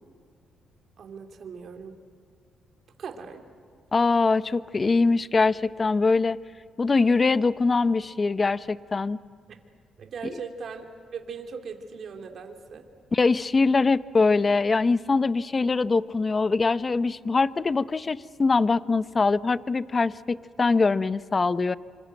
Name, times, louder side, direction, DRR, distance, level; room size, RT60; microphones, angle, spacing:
voice 1, 1.0-1.9 3.0-3.4 10.0-10.8 11.1-12.9, right 5 dB, 55° right, 4 dB, 3.0 m, -39 dB
voice 2, 3.9-6.4 6.8-9.2 13.1-21.8, left 4 dB, 30° left, 16 dB, 0.7 m, -23 dB
26.5 x 26.0 x 7.9 m, 2.1 s
cardioid pair, 90°, 0 cm